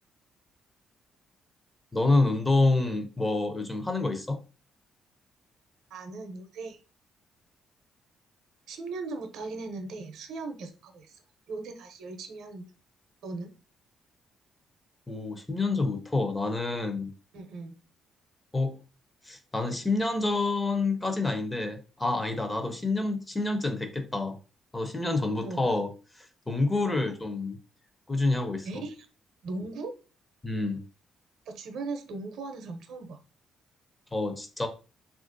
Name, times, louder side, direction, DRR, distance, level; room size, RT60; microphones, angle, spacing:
voice 1, 1.9-4.4 15.1-17.1 18.5-18.7 19.3-24.4 24.7-25.9 26.5-27.6 28.1-28.8 30.4-30.8 34.1-34.7, left 2 dB, 15° left, 0.6 m, -27 dB
voice 2, 5.9-6.8 8.7-11.2 11.5-12.6 13.2-13.5 17.3-17.7 25.4-25.7 26.8-27.0 28.6-29.1 29.4-29.9 31.5-33.2, right 3 dB, 80° right, 0.6 m, -38 dB
3.0 x 2.4 x 2.5 m
cardioid pair, 90°, 0 cm